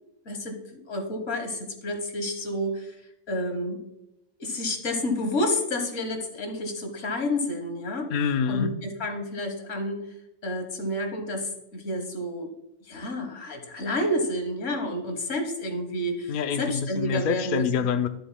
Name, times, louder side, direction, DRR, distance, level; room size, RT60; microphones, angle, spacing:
voice 1, 0.3-3.0 3.3-3.8 4.4-8.1 8.5-10.1 10.4-12.5 12.8-17.7, left 1 dB, 80° left, 5 dB, 1.8 m, -30 dB
voice 2, 8.1-8.7 16.3-18.1, left 6 dB, 55° left, 9 dB, 0.6 m, -26 dB
12.5 x 7.7 x 2.2 m, 0.85 s
omnidirectional pair, 1.3 m